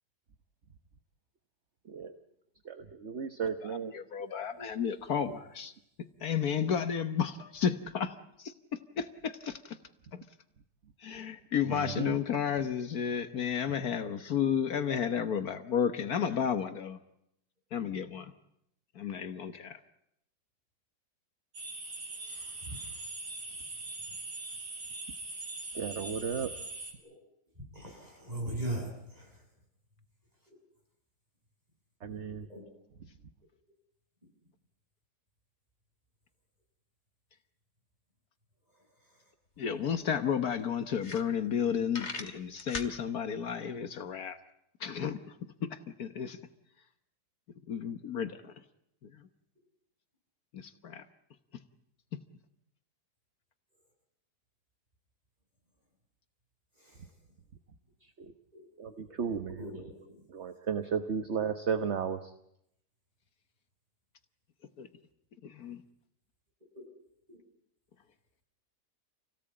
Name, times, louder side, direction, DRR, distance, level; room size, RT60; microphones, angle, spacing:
voice 1, 2.6-3.9 11.6-12.2 25.6-26.5 32.0-32.5 58.0-58.3 58.8-59.6 60.3-62.3, right 7 dB, 45° right, 9 dB, 1.3 m, -34 dB
voice 2, 3.6-5.7 6.0-9.8 10.1-10.2 11.0-17.0 17.7-18.3 19.0-19.8 39.6-44.4 44.8-45.2 45.6-46.4 47.7-48.5 49.0-49.2 50.5-51.0 64.8-64.9 65.4-65.8, left 7 dB, 65° left, 10 dB, 1.6 m, -32 dB
sound 1, 21.5-26.9, right 2 dB, 90° right, 4.9 m, -41 dB
voice 3, 22.2-23.1 23.4-23.6 24.1-24.2 27.6-29.4 32.5-32.6 38.7-39.3 56.7-57.2 58.5-58.6 59.0-59.2 59.6-60.1 66.7-66.9 67.3-67.4, right 1 dB, 25° right, 0 dB, 7.8 m, -41 dB
sound 2, 39.6-39.7 40.0-40.1 40.6-40.7 40.9-41.6 41.9-42.9, left 3 dB, 45° left, 2.3 m, -39 dB
28.0 x 18.0 x 8.7 m, 0.77 s
omnidirectional pair, 1.7 m